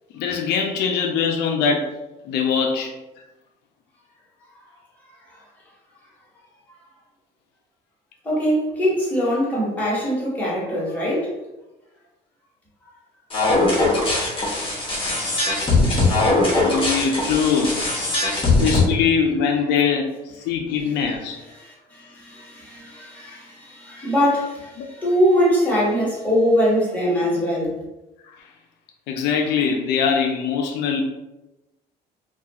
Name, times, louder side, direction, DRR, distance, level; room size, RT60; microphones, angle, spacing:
voice 1, 0.1-1.9 2.2-2.9 16.1-16.2 16.5-18.3 18.6-21.4 24.8-24.9 28.3-28.4 29.1-31.0, left 6 dB, 85° left, 2 dB, 0.4 m, -22 dB
voice 2, 8.2-11.3 15.2-15.3 16.2-16.3 18.1-18.5 21.6-27.7, equal, 10° left, -7 dB, 1.2 m, -22 dB
sound 1, 13.3-18.8, left 2 dB, 30° left, 0.8 m, -20 dB
2.3 x 2.3 x 2.8 m, 1.0 s
cardioid pair, 110°, 17 cm